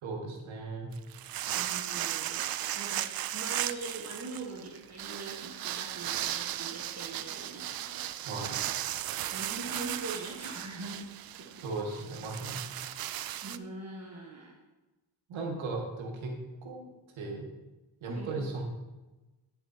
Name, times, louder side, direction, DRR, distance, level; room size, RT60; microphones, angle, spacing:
voice 1, 0.0-0.9 8.2-8.6 11.5-12.6 15.3-16.9 17.1-17.5 18.0-18.6, right 3 dB, 80° right, 0 dB, 2.1 m, -37 dB
sound 1, 0.9-13.6, right 12 dB, 50° right, 0.5 m, -36 dB
voice 2, 1.5-2.5 2.7-8.0 9.3-11.6 13.4-14.6 18.1-18.4, right 3 dB, 35° right, -1 dB, 1.5 m, -42 dB
12.5 x 7.1 x 2.9 m, 1.1 s
cardioid pair, 85°, 46 cm